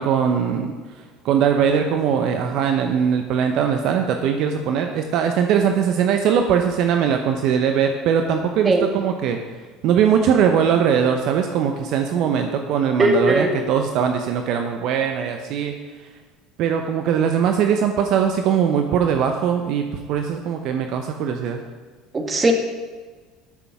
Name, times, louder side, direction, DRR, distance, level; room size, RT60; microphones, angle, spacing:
voice 1, 0.0-9.4 9.8-15.7 16.0-16.1 16.6-21.6, right 7 dB, 60° right, 5 dB, 0.8 m, -21 dB
voice 2, 13.0-13.5 22.1-22.5, right 2 dB, 25° right, 3 dB, 1.8 m, -18 dB
11.0 x 6.9 x 6.0 m, 1.4 s
hypercardioid pair, 70°, 0 cm